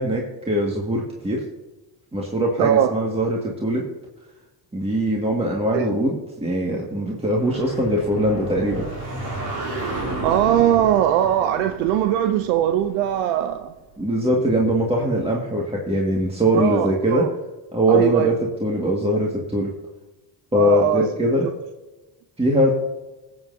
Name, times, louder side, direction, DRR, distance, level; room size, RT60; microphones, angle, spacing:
voice 1, 0.0-1.4 2.1-3.8 4.7-8.9 14.0-17.3 17.7-18.3 18.6-19.7 20.5-21.5 22.4-22.7, equal, 10° right, -2 dB, 1.8 m, -21 dB
voice 2, 2.6-2.9 5.7-5.8 10.2-13.7 16.5-17.3 17.9-18.3 20.5-21.1, right 11 dB, 85° right, 8 dB, 0.6 m, -20 dB
sound 1, 7.2-13.8, right 2 dB, 50° right, 3.6 m, -32 dB
19.5 x 7.9 x 2.7 m, 1.1 s
supercardioid pair, 65°, 48 cm